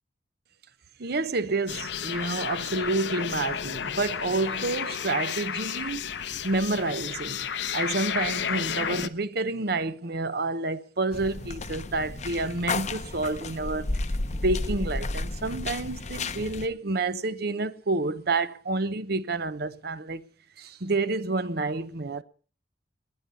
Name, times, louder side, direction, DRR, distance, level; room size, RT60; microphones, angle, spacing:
voice 1, 1.0-6.1 6.4-7.5 7.7-14.0 14.3-20.3 20.6-22.2, right 3 dB, 60° right, 0.9 m, -29 dB
sound 1, 1.7-9.1, left 8 dB, 70° left, 0.8 m, -32 dB
sound 2, 11.1-16.7, left 2 dB, 40° left, 0.8 m, -32 dB
20.0 x 9.9 x 5.3 m
head